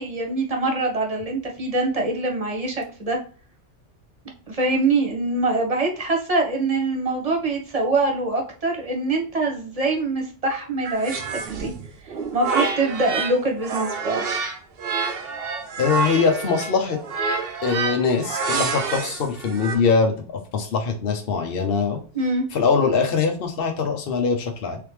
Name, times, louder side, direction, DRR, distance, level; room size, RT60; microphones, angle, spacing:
voice 1, 0.0-3.2 4.5-11.7 12.3-14.2 22.1-22.5, right 2 dB, 35° right, 2 dB, 1.2 m, -24 dB
sound 1, 10.8-13.4 13.6-19.8, right 4 dB, 60° right, 0.9 m, -27 dB
voice 2, 15.8-17.0 17.6-22.0 22.5-24.8, left 5 dB, 55° left, 3 dB, 1.0 m, -22 dB
3.8 x 3.5 x 3.1 m, 0.40 s
omnidirectional pair, 1.2 m